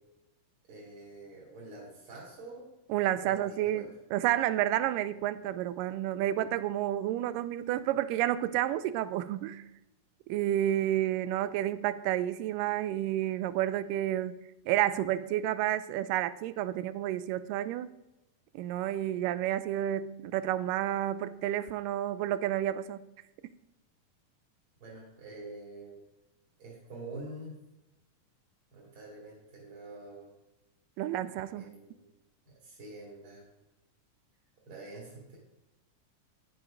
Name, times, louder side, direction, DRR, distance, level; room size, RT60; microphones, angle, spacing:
voice 1, 0.7-2.7 3.2-3.9 24.8-26.0 26.6-27.5 28.7-30.3 31.5-32.0 32.4-33.5 34.7-35.4, right 2 dB, 40° right, 3.1 m, -46 dB
voice 2, 2.9-9.7 10.3-14.4 14.7-17.9 18.5-23.0 31.0-31.7, right 13 dB, 80° right, 2.1 m, -30 dB
10.5 x 7.8 x 5.1 m
omnidirectional pair, 4.0 m